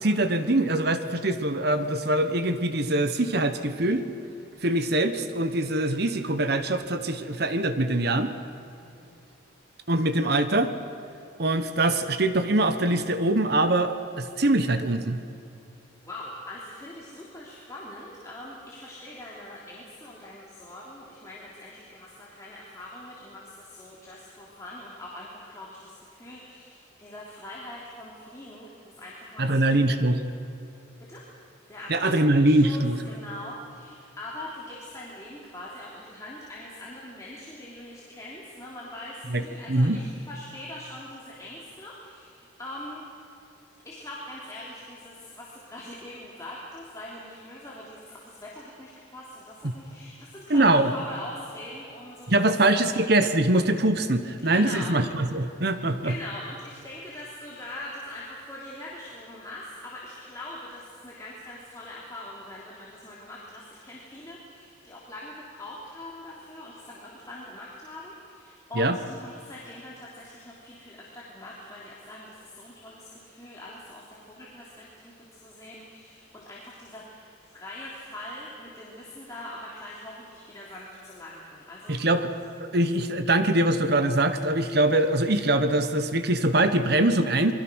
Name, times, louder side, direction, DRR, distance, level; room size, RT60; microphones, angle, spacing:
voice 1, 0.0-4.1 4.6-8.3 9.9-10.7 11.4-15.2 29.4-30.2 31.9-33.0 39.3-39.4 39.7-40.0 50.5-50.9 52.3-56.1 68.7-69.0 81.9-82.3 82.6-87.5, right 1 dB, 55° right, 9 dB, 1.2 m, -23 dB
voice 2, 8.8-9.1 16.0-30.2 31.0-31.2 31.7-43.0 43.8-52.4 52.7-52.9 54.5-55.0 55.5-55.6 56.0-82.0, left 1 dB, 15° left, -5 dB, 3.2 m, -42 dB
28.0 x 22.0 x 6.3 m, 2.7 s
head